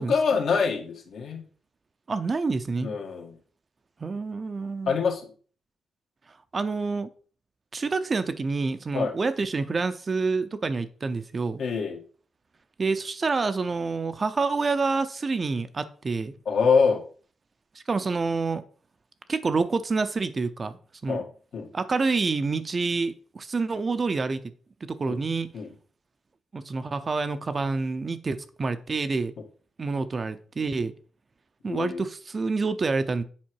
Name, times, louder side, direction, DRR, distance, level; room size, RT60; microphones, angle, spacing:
voice 1, 0.0-1.4 2.8-3.4 4.9-5.3 8.9-9.1 11.6-12.0 16.4-17.0 21.1-21.7 25.1-25.2 25.5-25.7 31.6-32.0, left 5 dB, 70° left, 1.8 m, -25 dB
voice 2, 2.1-2.9 4.0-5.0 6.5-7.1 7.7-11.6 12.8-16.3 17.9-18.6 19.3-20.7 21.0-21.2 21.7-24.4 24.9-25.5 26.5-29.3 29.8-30.9 31.6-33.2, right 4 dB, 35° right, 0.6 m, -27 dB
7.4 x 4.9 x 4.7 m
cardioid pair, 110°, 0 cm